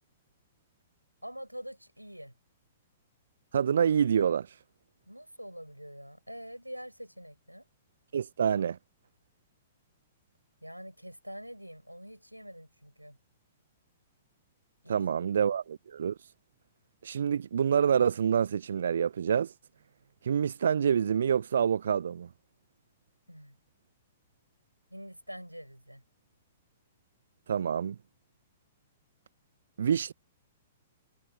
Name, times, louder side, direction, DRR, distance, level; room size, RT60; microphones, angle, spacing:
voice 1, 1.2-2.3 5.1-7.7 10.6-13.2 14.8-15.0 15.5-15.6 23.3-23.6 24.9-26.0, equal, 90° right, 6.8 m, -45 dB
voice 2, 3.5-4.5 8.1-8.8 14.9-16.1 17.0-19.5 20.2-22.3 27.5-28.0 29.8-30.1, right 8 dB, 60° right, 0.7 m, -27 dB
figure-of-eight pair, 110°, 0 cm